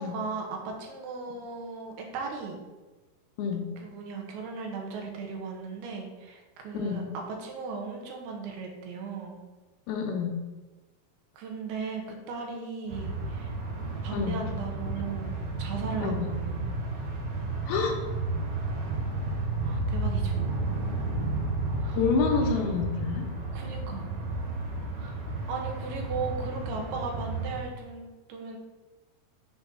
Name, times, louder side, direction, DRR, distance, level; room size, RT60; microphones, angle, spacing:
voice 1, 0.0-2.6 3.8-9.4 11.3-13.5 14.0-16.8 19.6-20.4 21.8-22.0 22.4-22.6 23.5-24.1 25.0-25.2 25.5-28.6, right 4 dB, 80° right, 1 dB, 3.0 m, -37 dB
voice 2, 6.7-7.1 9.9-10.4 14.1-14.4 16.0-16.3 17.7-17.9 21.9-23.3, left 5 dB, 75° left, 2 dB, 2.5 m, -28 dB
sound 1, 12.9-27.6, right 2 dB, 60° right, 3.0 m, -32 dB
6.9 x 3.9 x 5.5 m, 1.2 s
omnidirectional pair, 4.6 m